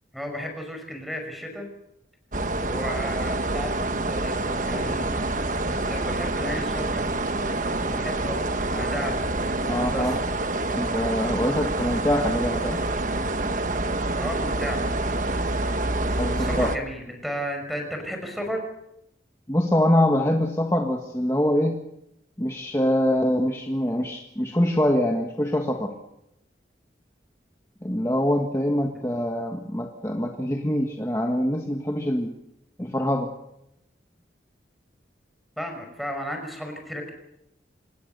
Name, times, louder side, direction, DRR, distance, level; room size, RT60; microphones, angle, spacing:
voice 1, 0.1-1.7 2.6-3.7 4.1-5.1 5.7-7.1 7.9-9.2 9.9-10.2 14.2-14.8 16.3-18.6 35.6-37.1, equal, ahead, 3 dB, 5.5 m, -33 dB
sound 1, 2.3-16.8, right 2 dB, 45° right, 1.3 m, -27 dB
voice 2, 9.7-10.2 10.7-12.8 16.2-16.7 19.5-21.8 22.4-25.9 27.8-32.3 32.8-33.3, left 1 dB, 15° left, 3 dB, 1.5 m, -24 dB
26.5 x 20.0 x 6.7 m, 0.81 s
head